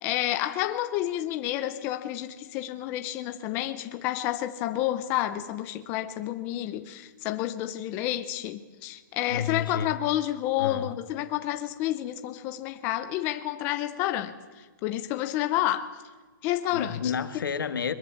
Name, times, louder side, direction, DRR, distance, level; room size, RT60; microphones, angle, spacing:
voice 1, 0.0-16.0 16.4-17.0, left 13 dB, 15° left, 0.7 m, -30 dB
voice 2, 9.3-10.0 10.6-10.9 16.7-17.9, left 7 dB, 80° left, 1.8 m, -30 dB
22.5 x 21.5 x 7.1 m
hypercardioid pair, 170°, 11 cm